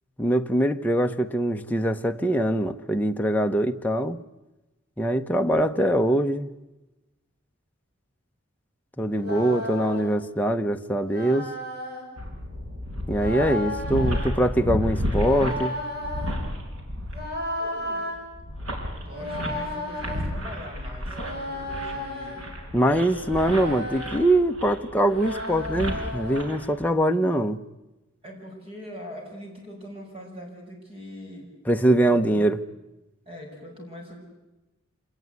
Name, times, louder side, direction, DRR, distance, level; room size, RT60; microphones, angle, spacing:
voice 1, 0.2-4.2 5.0-6.5 9.0-11.5 13.1-15.8 22.7-27.6 31.7-32.6, right 1 dB, 10° left, 4 dB, 0.8 m, -23 dB
sound 1, 9.1-10.2 11.1-12.0 13.1-14.3 15.1-16.3 17.1-18.2 19.1-20.2 21.1-22.5 23.1-24.2 25.1-26.5, left 1 dB, 45° right, 6.2 m, -34 dB
voice 2, 9.2-9.7 17.6-18.1 19.0-22.4 28.2-31.5 32.1-32.5 33.2-34.2, equal, 25° right, 1 dB, 6.5 m, -42 dB
sound 2, 12.2-26.9, equal, 75° right, 5.3 m, -32 dB
26.5 x 19.0 x 9.6 m, 1.0 s
head